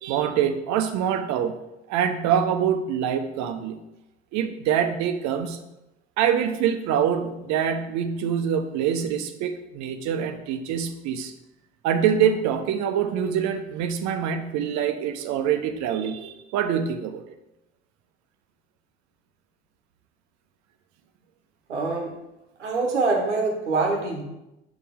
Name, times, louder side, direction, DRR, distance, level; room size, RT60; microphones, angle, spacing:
voice 1, 0.0-1.6 1.9-3.8 4.3-5.6 6.2-11.3 11.8-17.2, right 8 dB, 55° right, 8 dB, 0.7 m, -25 dB
voice 2, 21.7-22.2 22.6-24.2, right 3 dB, 90° right, 1 dB, 1.1 m, -24 dB
6.7 x 4.2 x 3.6 m, 0.91 s
hypercardioid pair, 60°, 34 cm